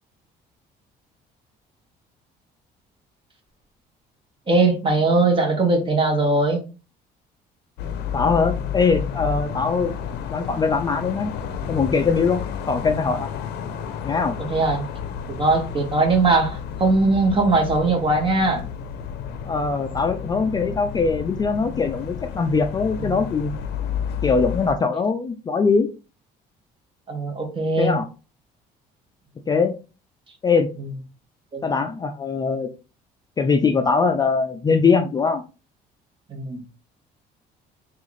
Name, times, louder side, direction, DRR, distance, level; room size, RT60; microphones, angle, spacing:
voice 1, 4.5-6.6 14.5-14.8 15.3-18.6 23.0-23.2 27.1-27.9 31.5-31.6 36.3-36.6, right 3 dB, 30° right, 1.0 m, -20 dB
sound 1, 7.8-24.7, left 8 dB, 80° left, 0.5 m, -31 dB
voice 2, 8.1-9.9 10.3-11.3 11.7-12.4 12.7-13.3 14.0-14.4 19.4-23.5 24.2-25.9 27.8-28.1 29.5-29.7 30.4-30.7 31.6-32.7 33.4-35.4, left 4 dB, 25° left, 0.4 m, -21 dB
3.6 x 2.4 x 3.1 m
cardioid pair, 110°, 17 cm